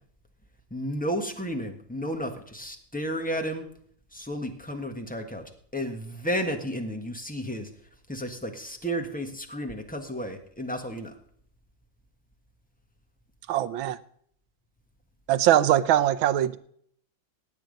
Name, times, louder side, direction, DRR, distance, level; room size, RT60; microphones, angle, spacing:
voice 1, 0.7-3.6 4.1-5.4 5.7-7.7 8.1-11.1, equal, 5° left, 4 dB, 1.2 m, -32 dB
voice 2, 13.5-14.0 15.3-16.6, right 12 dB, 80° right, 12 dB, 1.5 m, -22 dB
16.5 x 9.1 x 5.2 m, 0.63 s
omnidirectional pair, 2.2 m